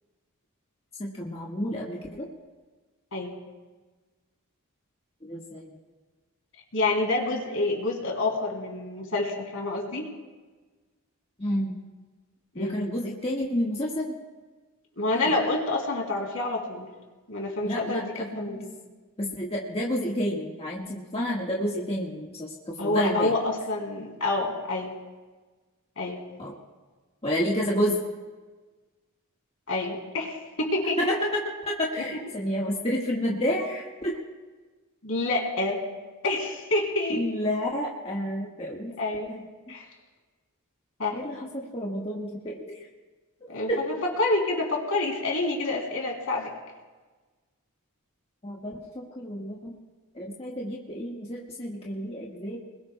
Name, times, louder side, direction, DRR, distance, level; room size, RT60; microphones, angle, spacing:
voice 1, 1.0-2.3 5.3-5.6 11.4-11.7 12.5-14.1 17.6-18.6 19.2-23.3 26.4-26.5 27.2-28.0 31.0-34.2 37.1-38.9 39.3-39.4 41.1-42.6 43.7-43.8 48.4-49.7 50.1-52.6, equal, 25° left, -4 dB, 1.5 m, -30 dB
voice 2, 6.7-10.1 12.5-12.8 15.0-16.9 17.3-18.7 22.8-24.9 26.0-26.2 29.7-31.1 35.0-35.8 36.2-37.2 39.0-39.3 39.7-39.9 41.0-41.2 43.5-46.5, left 2 dB, 65° left, 0 dB, 3.0 m, -28 dB
28.5 x 21.0 x 2.2 m, 1.3 s
head